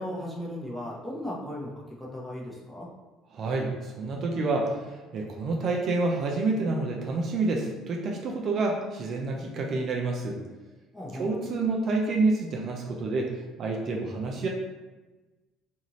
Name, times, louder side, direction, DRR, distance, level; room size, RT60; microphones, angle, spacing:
voice 1, 0.0-1.7 2.0-2.9 10.9-11.3, left 1 dB, 5° left, -4 dB, 0.9 m, -36 dB
voice 2, 3.3-10.4 11.1-13.3 13.6-14.5, right 3 dB, 55° right, 0 dB, 0.5 m, -28 dB
2.7 x 2.5 x 3.0 m, 1.2 s
supercardioid pair, 80°, 0 cm